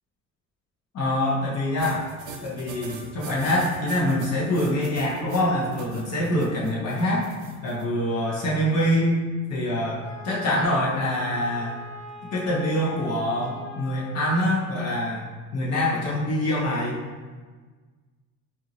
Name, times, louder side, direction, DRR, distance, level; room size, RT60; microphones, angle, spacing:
voice 1, 0.9-2.0 2.4-7.3 7.6-9.2 9.5-11.7 12.3-15.2 15.5-17.0, left 1 dB, 55° left, -6 dB, 1.0 m, -25 dB
sound 1, 1.8-7.8, right 5 dB, 70° right, 0.6 m, -41 dB
Wind instrument woodwind instrument, 10.0-14.6, left 1 dB, 80° left, 1.2 m, -42 dB
4.6 x 2.6 x 3.0 m, 1.4 s
cardioid pair, 150°, 31 cm